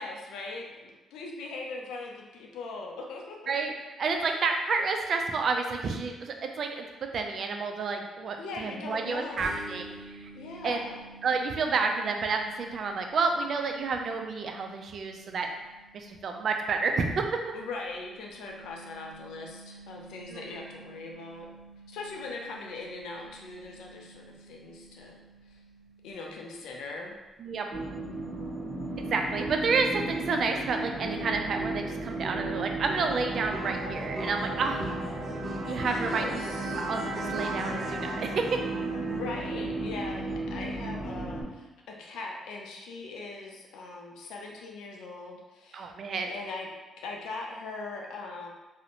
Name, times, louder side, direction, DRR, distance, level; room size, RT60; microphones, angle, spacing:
voice 1, 0.0-3.5 4.1-4.2 8.4-9.5 10.3-11.0 17.5-21.5 21.9-25.2 25.5-25.6 26.0-27.2 35.8-36.8 39.1-45.9 46.2-46.7 47.0-48.5, left 3 dB, 90° left, 0 dB, 0.4 m, -40 dB
voice 2, 4.0-10.3 10.6-10.8 11.2-15.5 15.9-17.3 20.3-20.5 27.4-27.7 29.0-34.9 35.7-36.5 36.9-38.6 45.7-46.3, right 4 dB, 55° right, 4 dB, 0.3 m, -30 dB
sound 1, 9.4-26.9, right 2 dB, 10° right, 0.9 m, -51 dB
sound 2, 27.7-41.4, right 2 dB, 40° right, 0.8 m, -34 dB
2.5 x 2.0 x 2.8 m, 1.1 s
cardioid pair, 90°, 0 cm